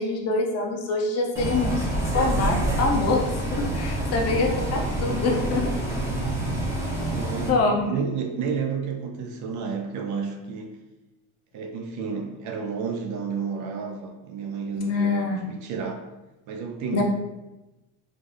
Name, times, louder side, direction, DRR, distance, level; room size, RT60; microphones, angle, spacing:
voice 1, 0.0-1.9 2.1-3.2 3.5-5.7 7.4-7.9 14.8-15.4 16.9-17.0, left 3 dB, 40° left, 1 dB, 0.7 m, -25 dB
Bus, 1.4-7.5, right 1 dB, 5° right, 0.7 m, -27 dB
voice 2, 7.1-10.8 11.5-16.0 16.5-17.0, right 5 dB, 50° right, 3 dB, 0.5 m, -31 dB
4.0 x 2.5 x 3.2 m, 1.0 s
cardioid pair, 140°, 40 cm